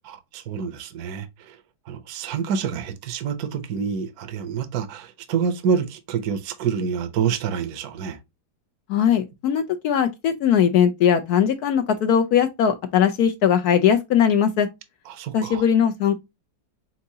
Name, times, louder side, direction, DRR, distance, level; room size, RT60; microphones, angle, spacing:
voice 1, 0.1-1.6 1.9-8.2 15.1-15.6, right 6 dB, 60° right, 1.1 m, -27 dB
voice 2, 8.9-14.7 15.3-16.1, left 8 dB, 70° left, 0.9 m, -20 dB
4.6 x 3.8 x 2.7 m
omnidirectional pair, 2.0 m